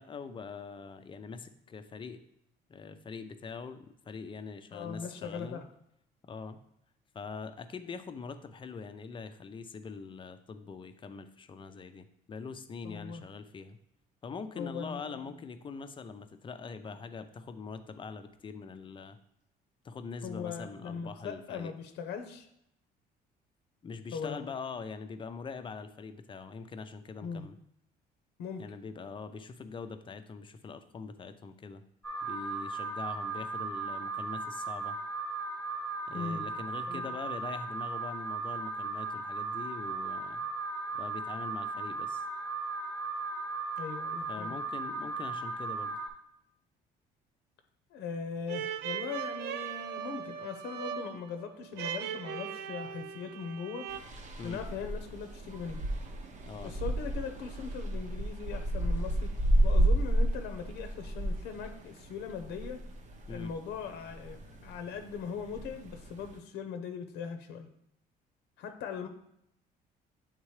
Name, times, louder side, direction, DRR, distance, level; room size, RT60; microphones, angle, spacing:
voice 1, 0.0-2.2 2.7-5.6 6.3-6.6 7.1-13.8 14.2-19.2 19.8-21.7 23.8-27.6 28.6-31.8 32.2-35.0 36.1-40.4 40.9-42.2 44.3-46.0 54.4-54.6 56.4-56.7 63.3-63.5, left 5 dB, 30° left, 10 dB, 0.5 m, -43 dB
voice 2, 4.7-5.6 12.8-13.2 14.6-15.3 20.2-22.5 24.1-24.5 27.2-27.4 28.4-28.6 36.1-36.4 36.9-37.2 43.8-44.6 47.9-53.9 54.4-55.8 56.6-62.8 63.3-67.7 68.6-69.1, left 6 dB, 85° left, 6 dB, 0.8 m, -40 dB
Alarm, 32.0-46.1, right 3 dB, 15° left, 1.0 m, -37 dB
sound 1, 48.5-54.0, right 8 dB, 80° right, 0.5 m, -39 dB
sound 2, 53.9-66.4, right 1 dB, 45° right, 0.8 m, -32 dB
8.3 x 3.7 x 3.2 m, 0.78 s
cardioid pair, 110°, 17 cm